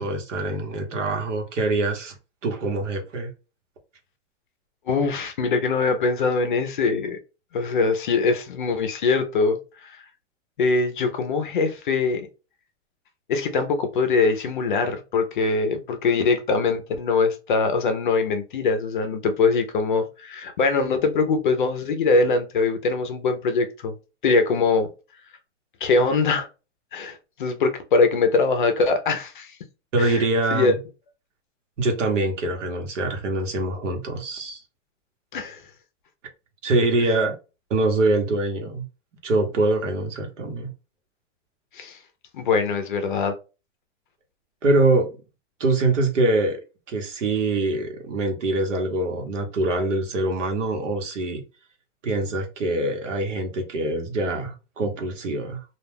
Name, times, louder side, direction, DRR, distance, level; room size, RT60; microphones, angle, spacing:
voice 1, 0.0-2.2 2.4-3.3 29.9-30.7 31.8-34.6 36.6-37.4 37.7-38.9 39.2-40.7 44.6-45.1 45.6-46.6 46.9-51.4 52.0-55.6, right 2 dB, 80° right, 1.1 m, -24 dB
voice 2, 4.9-7.2 7.5-10.0 10.6-12.3 13.3-23.9 24.2-24.9 25.8-26.5 26.9-29.6 30.0-30.7 35.3-35.6 41.7-42.0 42.3-43.4, left 4 dB, 45° left, 0.5 m, -22 dB
2.3 x 2.2 x 3.3 m
hypercardioid pair, 170°, 36 cm